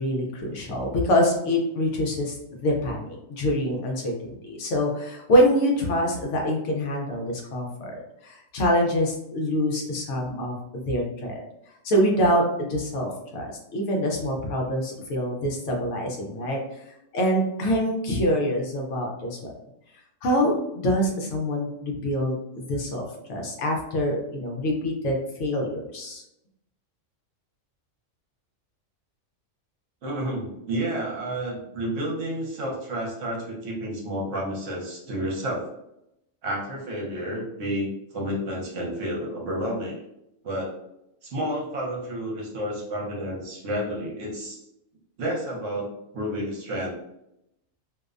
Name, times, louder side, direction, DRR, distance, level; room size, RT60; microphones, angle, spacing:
voice 1, 0.0-2.4 2.6-4.1 4.4-11.4 11.8-16.6 17.1-19.5 20.2-23.0 23.3-26.2, equal, 70° left, 0 dB, 0.9 m, -25 dB
voice 2, 30.0-35.7 36.4-40.0 40.4-40.7 41.2-44.6 45.2-46.9, equal, 70° right, -2 dB, 1.0 m, -30 dB
2.6 x 2.1 x 2.4 m, 0.83 s
omnidirectional pair, 1.4 m